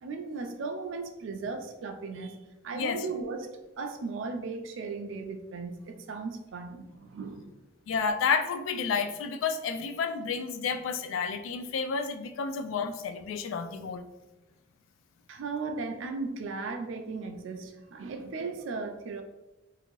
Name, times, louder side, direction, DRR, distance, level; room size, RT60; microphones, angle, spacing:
voice 1, 0.0-2.4 2.6-3.5 3.8-7.5 15.3-19.2, right 4 dB, 75° right, 5 dB, 0.4 m, -36 dB
voice 2, 2.7-3.1 7.9-14.0, left 5 dB, 80° left, 8 dB, 0.3 m, -30 dB
2.7 x 2.6 x 2.9 m, 1.0 s
head